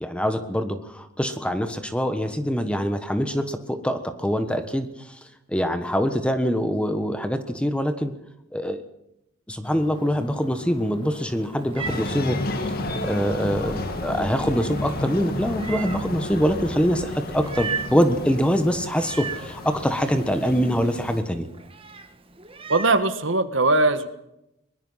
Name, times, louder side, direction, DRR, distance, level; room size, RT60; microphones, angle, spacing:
voice 1, 0.0-4.9 5.5-8.1 8.5-8.8 9.5-12.4 13.0-21.5, equal, 5° left, 8 dB, 1.3 m, -24 dB
sound 1, 9.6-16.8, left 1 dB, 25° left, 1.6 m, -43 dB
Meow, 11.0-23.1, right 5 dB, 25° right, 1.5 m, -39 dB
sound 2, 11.8-21.2, left 1 dB, 45° left, 2.1 m, -32 dB
voice 2, 22.7-24.1, right 2 dB, 65° right, 10 dB, 1.6 m, -20 dB
22.5 x 20.5 x 5.7 m, 0.85 s
head